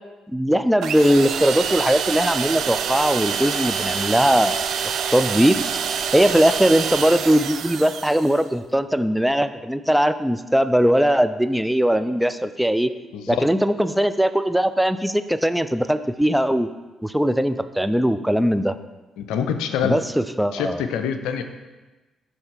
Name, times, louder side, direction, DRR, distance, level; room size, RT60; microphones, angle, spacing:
voice 1, 0.3-4.7 5.1-5.6 6.1-12.9 13.3-16.7 17.0-18.8 19.8-20.8, equal, 5° right, 11 dB, 0.4 m, -20 dB
sound 1, 0.8-8.4, right 7 dB, 70° right, 0.4 m, -26 dB
voice 2, 13.1-13.5 19.2-20.0 20.5-21.4, left 7 dB, 80° left, 8 dB, 0.5 m, -25 dB
7.8 x 3.3 x 5.9 m, 1.2 s
hypercardioid pair, 50°, 0 cm